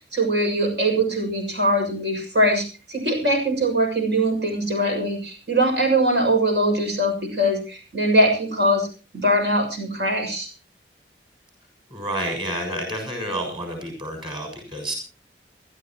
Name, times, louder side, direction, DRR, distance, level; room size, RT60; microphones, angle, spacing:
voice 1, 0.1-8.9 9.1-10.5, right 1 dB, 80° right, 2 dB, 6.9 m, -22 dB
voice 2, 11.9-14.9, right 1 dB, 30° right, 3 dB, 6.6 m, -29 dB
29.0 x 12.5 x 3.0 m, 0.34 s
head